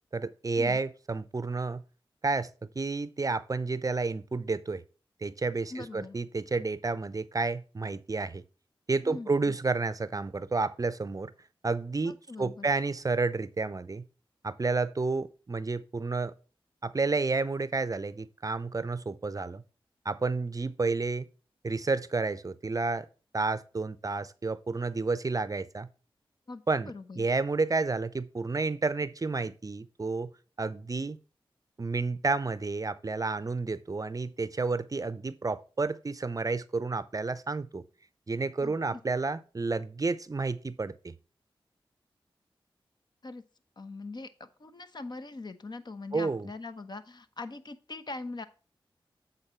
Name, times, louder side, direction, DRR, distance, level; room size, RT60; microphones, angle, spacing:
voice 1, 0.1-1.8 2.2-2.5 2.8-4.8 5.2-8.4 8.9-11.3 11.6-14.0 14.4-16.3 16.8-19.6 20.0-21.3 21.6-23.1 23.3-25.9 26.7-26.9 27.2-30.3 30.6-31.2 31.8-37.8 38.3-41.1 46.1-46.5, right 3 dB, 40° right, 0.6 m, -30 dB
voice 2, 5.7-6.2 9.0-9.6 12.0-12.7 26.5-27.3 38.6-39.0 43.2-43.4 43.8-48.4, left 3 dB, 50° left, 1.0 m, -42 dB
7.9 x 3.9 x 5.6 m
cardioid pair, 45°, 10 cm